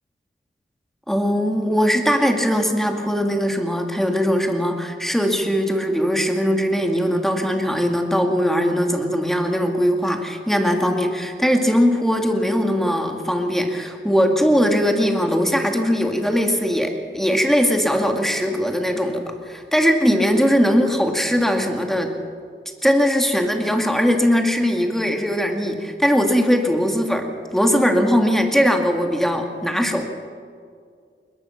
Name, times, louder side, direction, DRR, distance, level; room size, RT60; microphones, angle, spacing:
voice 1, 1.1-22.1 22.8-30.3, equal, ahead, 3 dB, 2.5 m, -20 dB
21.0 x 21.0 x 6.0 m, 2.3 s
wide cardioid pair, 55°, 20 cm